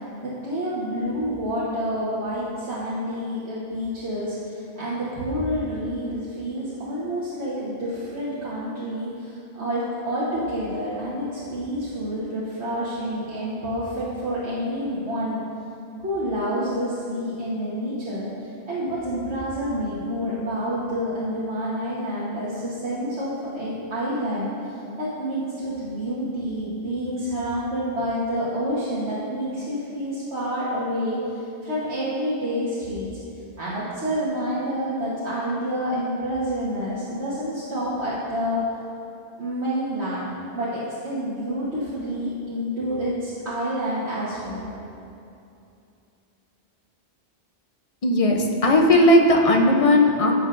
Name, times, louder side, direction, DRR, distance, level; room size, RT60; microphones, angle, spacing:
voice 1, 0.2-15.4 16.0-33.1 33.6-38.6 39.4-40.3 40.5-44.7, equal, 70° right, -10 dB, 1.6 m, -28 dB
voice 2, 48.0-50.3, left 1 dB, 35° left, 2 dB, 0.6 m, -17 dB
14.5 x 6.1 x 2.6 m, 2.7 s
omnidirectional pair, 1.2 m